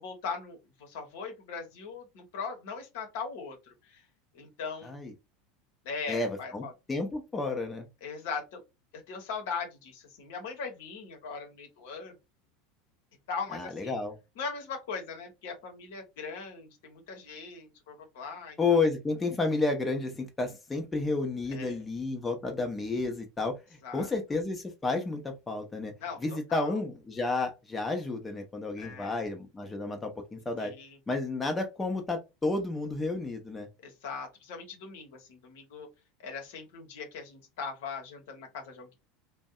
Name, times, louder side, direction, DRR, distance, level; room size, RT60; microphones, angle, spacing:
voice 1, 0.0-4.0 4.3-4.9 5.8-6.7 8.0-8.6 8.9-12.1 13.3-14.0 14.4-18.8 21.5-21.8 23.8-24.1 26.0-26.8 28.8-29.2 30.6-31.0 33.8-35.9 36.2-38.9, left 5 dB, 65° left, 0.8 m, -40 dB
voice 2, 6.1-7.9 13.5-14.1 18.6-23.6 23.9-25.9 26.2-30.7 31.1-33.7, left 3 dB, 15° left, 0.6 m, -31 dB
2.6 x 2.1 x 2.3 m
figure-of-eight pair, 80°, 0 cm